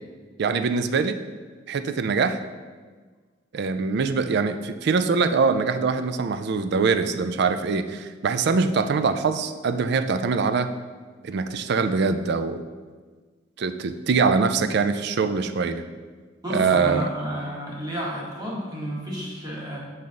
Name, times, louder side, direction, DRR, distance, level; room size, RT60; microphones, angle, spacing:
voice 1, 0.4-1.2 1.7-2.4 3.5-10.7 11.2-12.6 13.6-15.8 16.5-17.1, right 4 dB, 55° right, 10 dB, 0.4 m, -23 dB
voice 2, 16.4-19.8, equal, 20° right, -5 dB, 1.4 m, -31 dB
7.6 x 4.1 x 3.8 m, 1.4 s
head